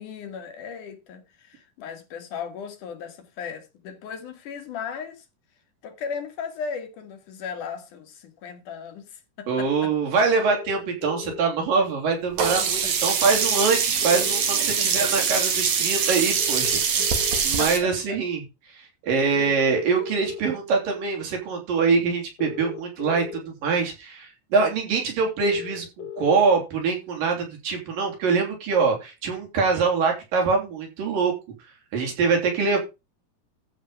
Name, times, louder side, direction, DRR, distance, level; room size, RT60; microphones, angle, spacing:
voice 1, 0.0-5.2 5.8-9.9 12.8-13.2 14.8-14.9 17.0-17.1 17.6-18.2 19.3-19.6, left 6 dB, 70° left, 3.1 m, -37 dB
voice 2, 9.5-18.4 18.7-31.3 31.9-32.8, right 4 dB, 80° right, 5.0 m, -24 dB
sound 1, 10.5-11.4 13.4-14.4 16.4-17.4 19.4-20.4 22.4-23.4 25.4-26.4, left 9 dB, 50° left, 2.5 m, -37 dB
Sink (filling or washing), 12.4-17.8, right 6 dB, 60° right, 3.3 m, -23 dB
14.0 x 5.1 x 5.7 m
omnidirectional pair, 3.9 m